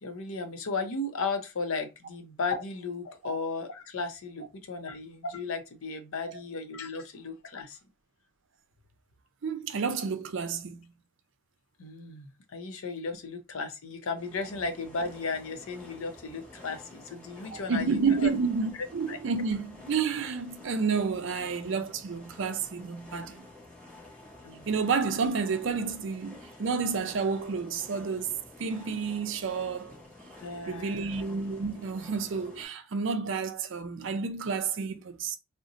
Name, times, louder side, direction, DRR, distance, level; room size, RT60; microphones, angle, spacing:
voice 1, 0.0-7.8 11.8-18.3 19.1-19.2 24.4-24.7 30.4-31.1, left 4 dB, 75° left, 0.6 m, -35 dB
voice 2, 9.4-10.9 17.5-23.5 24.7-28.3 28.6-29.9 30.7-35.4, right 5 dB, 55° right, 0.4 m, -30 dB
sound 1, 14.2-32.6, left 2 dB, 5° left, 0.7 m, -50 dB
2.6 x 2.1 x 3.7 m
head